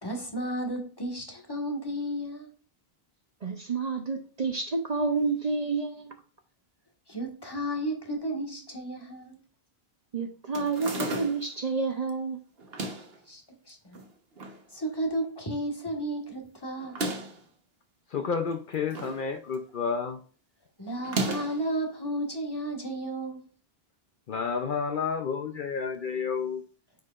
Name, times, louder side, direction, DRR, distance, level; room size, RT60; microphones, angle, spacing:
voice 1, 0.0-2.5 7.1-9.4 13.3-13.4 13.7-14.0 14.7-17.0 20.8-23.4, right 1 dB, 25° left, 1.5 m, -33 dB
voice 2, 3.4-6.2 10.1-12.4, right 4 dB, 45° right, 0.7 m, -29 dB
sound 1, 10.5-11.6 12.6-13.2 13.9-14.6 15.0-15.1 15.2-15.3 16.8-17.4 18.5-19.2 19.5-19.9 21.0-21.7, right 2 dB, 70° right, 1.3 m, -34 dB
voice 3, 18.1-20.2 24.3-26.6, left 5 dB, 60° left, 0.7 m, -30 dB
9.1 x 4.8 x 2.4 m
omnidirectional pair, 1.0 m